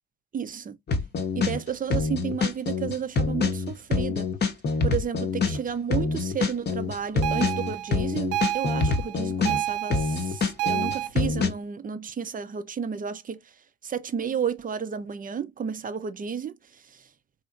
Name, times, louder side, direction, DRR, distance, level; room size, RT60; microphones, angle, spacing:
voice 1, 0.3-0.8 1.3-4.3 4.8-13.4 13.8-17.0, right 7 dB, 25° right, 0.6 m, -32 dB
sound 1, 0.9-1.6 1.9-5.6 5.9-9.6 9.9-11.5, left 4 dB, 30° left, 0.8 m, -26 dB
sound 2, 7.2-11.1, right 13 dB, 65° right, 0.6 m, -30 dB
4.1 x 2.8 x 2.4 m
figure-of-eight pair, 50°, 35 cm